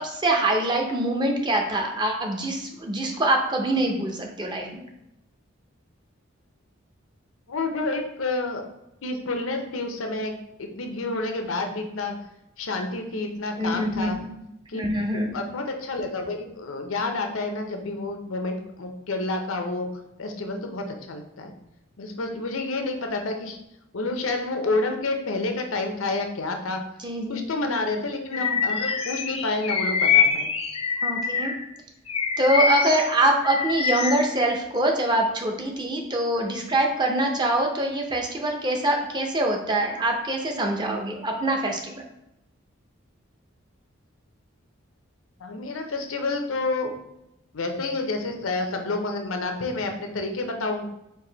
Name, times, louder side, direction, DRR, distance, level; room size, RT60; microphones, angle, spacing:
voice 1, 0.0-4.8 13.6-14.3 14.7-15.4 27.0-27.5 31.0-31.5 32.4-42.0, right 1 dB, 20° right, 2 dB, 0.6 m, -24 dB
voice 2, 7.5-8.6 9.0-12.2 12.6-14.2 14.7-14.8 15.1-19.9 20.2-21.5 22.0-23.6 23.9-26.8 27.3-30.5 45.4-46.9 47.5-50.8, left 2 dB, 90° left, 4 dB, 0.7 m, -29 dB
Bird vocalization bird call bird song, 28.3-31.6 32.1-34.3, left 6 dB, 30° left, 0.4 m, -24 dB
4.7 x 2.6 x 3.8 m, 0.85 s
head